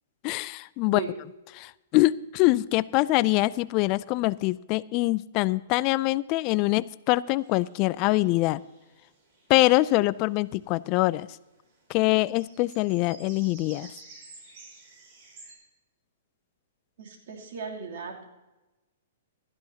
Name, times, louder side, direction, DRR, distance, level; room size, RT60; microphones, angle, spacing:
voice 1, 0.2-1.0 1.5-8.6 9.5-11.3 11.9-13.9, left 19 dB, 40° left, 20 dB, 0.3 m, -24 dB
sound 1, 7.4-10.6 11.0-11.4 11.6-15.5, right 3 dB, 45° right, 5.0 m, -52 dB
voice 2, 17.0-18.3, right 5 dB, 65° right, 1 dB, 2.9 m, -37 dB
17.0 x 12.5 x 2.8 m, 1.0 s
hypercardioid pair, 125°, 0 cm